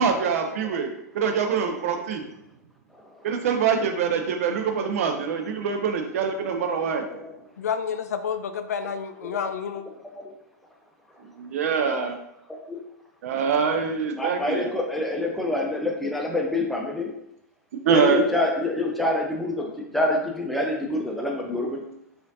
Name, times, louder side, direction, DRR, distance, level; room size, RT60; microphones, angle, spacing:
voice 1, 0.0-2.2 3.2-7.0 11.4-12.2 13.2-14.7 17.9-18.2, right 6 dB, 55° right, 5 dB, 0.6 m, -24 dB
voice 2, 6.9-7.4 9.2-9.4 10.1-10.2 12.0-12.1 12.7-12.8 14.1-17.1 17.9-21.8, left 2 dB, ahead, -1 dB, 0.7 m, -27 dB
voice 3, 7.6-9.8, left 7 dB, 65° left, 8 dB, 0.4 m, -29 dB
4.9 x 2.6 x 2.7 m, 0.78 s
figure-of-eight pair, 100°, 9 cm